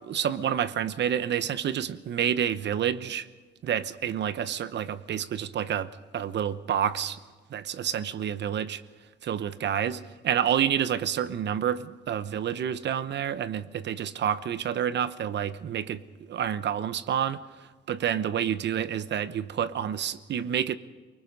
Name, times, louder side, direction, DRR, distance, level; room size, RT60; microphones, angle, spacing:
voice 1, 0.0-3.3 3.6-7.2 7.5-8.8 9.2-16.0 16.3-17.4 17.9-20.8, right 9 dB, 60° right, 15 dB, 1.0 m, -29 dB
28.5 x 19.5 x 5.4 m, 1.4 s
cardioid pair, 90°, 20 cm